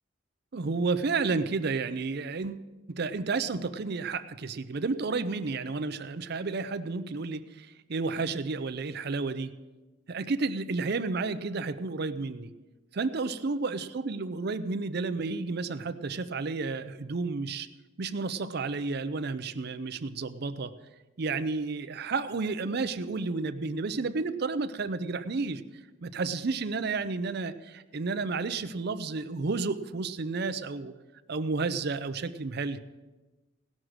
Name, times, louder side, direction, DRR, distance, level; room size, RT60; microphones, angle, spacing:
voice 1, 0.5-9.5 10.1-12.5 12.9-17.7 18.0-20.7 21.2-25.6 26.0-30.9 31.3-32.8, right 4 dB, 55° right, 11 dB, 0.5 m, -31 dB
17.5 x 6.3 x 6.4 m, 1.2 s
head